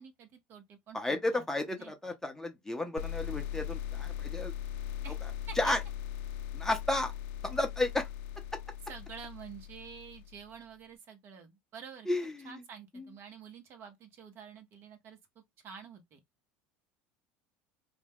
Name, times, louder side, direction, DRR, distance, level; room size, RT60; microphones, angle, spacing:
voice 1, 0.0-1.4 1.8-2.1 5.0-5.2 5.5-5.6 8.9-12.1 12.4-16.2, right 7 dB, 50° right, 0.9 m, -49 dB
voice 2, 0.9-4.5 5.6-5.8 6.5-7.1 7.4-8.1 12.1-12.5 12.9-13.1, left 2 dB, 10° left, 0.7 m, -32 dB
sound 1, 3.0-10.5, left 11 dB, 75° left, 0.4 m, -39 dB
2.3 x 2.2 x 3.4 m
hypercardioid pair, 85°, 5 cm